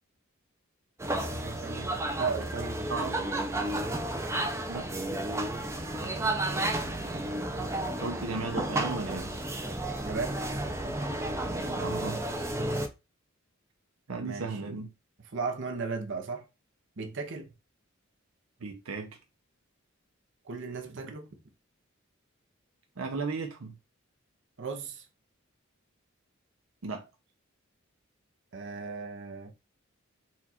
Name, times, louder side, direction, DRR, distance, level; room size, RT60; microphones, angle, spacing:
sound 1, 1.0-12.9, right 1 dB, 15° right, 0.5 m, -32 dB
voice 1, 1.1-2.9 6.0-7.1 10.0-10.4 14.2-14.7 15.3-16.5 17.0-17.5 20.4-21.3 24.6-25.1 28.5-29.5, right 4 dB, 60° right, 0.9 m, -37 dB
voice 2, 2.9-3.2 4.7-4.9 8.0-9.3 11.7-12.5 14.1-14.9 18.6-19.2 23.0-23.7 26.8-27.1, right 4 dB, 85° right, 0.7 m, -35 dB
4.4 x 2.4 x 4.2 m
head